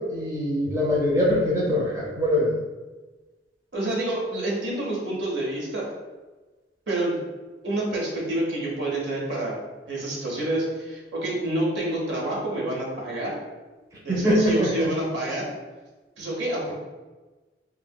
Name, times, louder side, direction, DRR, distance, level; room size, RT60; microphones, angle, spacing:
voice 1, 0.1-2.5 14.1-14.9, equal, 15° right, -5 dB, 0.6 m, -23 dB
voice 2, 3.7-5.8 6.9-7.3 7.6-9.5 9.9-13.4 14.0-15.5 16.2-16.7, right 1 dB, 80° right, -3 dB, 0.9 m, -28 dB
3.1 x 2.7 x 2.2 m, 1.2 s
head